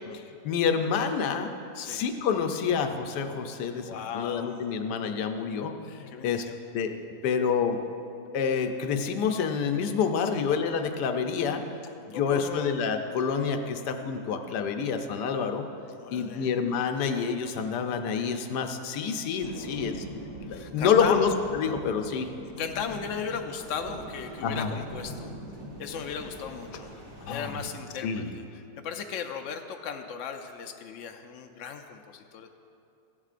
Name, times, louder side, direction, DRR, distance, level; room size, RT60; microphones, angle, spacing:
voice 1, 0.4-1.5 1.9-6.4 6.7-6.9 7.2-7.8 8.3-11.6 12.1-15.6 16.1-20.0 20.4-22.3 24.4-24.7 27.2-27.5 28.0-28.3, left 6 dB, 85° left, 6 dB, 1.3 m, -28 dB
voice 2, 3.9-4.6 6.1-6.6 10.3-10.4 12.1-12.8 16.0-16.5 19.5-19.9 20.5-21.3 22.4-25.3 25.8-26.9 27.3-32.5, left 7 dB, 70° left, 5 dB, 0.7 m, -37 dB
sound 1, 19.4-27.6, right 1 dB, 65° right, 2.1 m, -42 dB
15.0 x 11.0 x 2.5 m, 2.7 s
omnidirectional pair, 1.7 m